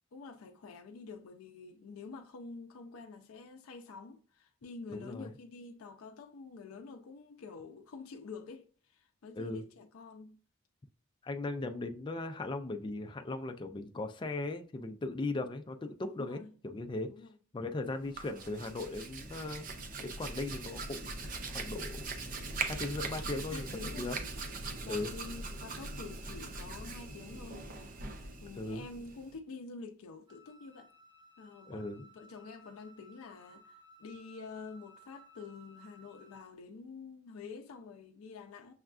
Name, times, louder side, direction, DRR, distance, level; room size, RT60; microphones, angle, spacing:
voice 1, 0.1-10.4 16.1-16.5 17.1-17.4 23.5-24.1 24.8-27.7 28.2-30.9 31.4-38.7, left 4 dB, 85° left, 0.4 m, -48 dB
voice 2, 4.9-5.3 9.3-9.6 11.2-17.1 17.5-19.7 20.0-21.1 21.5-22.0 22.6-24.2 24.9-25.1 28.6-28.8 31.7-32.0, left 2 dB, 25° left, 0.3 m, -38 dB
Hands, 18.0-29.4, right 3 dB, 40° right, 0.5 m, -41 dB
Wind instrument woodwind instrument, 30.3-36.5, equal, 20° right, 0.9 m, -59 dB
6.2 x 2.3 x 2.4 m
head